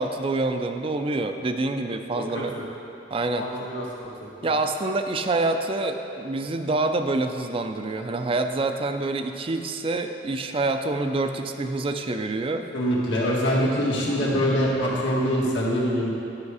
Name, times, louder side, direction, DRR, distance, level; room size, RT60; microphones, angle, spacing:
voice 1, 0.0-2.6 3.1-3.5 4.4-12.7 14.3-14.4, right 2 dB, 30° right, 7 dB, 0.4 m, -26 dB
voice 2, 2.1-2.6 3.4-3.8 12.7-16.1, equal, 85° left, -5 dB, 1.7 m, -24 dB
9.6 x 5.7 x 4.8 m, 2.8 s
head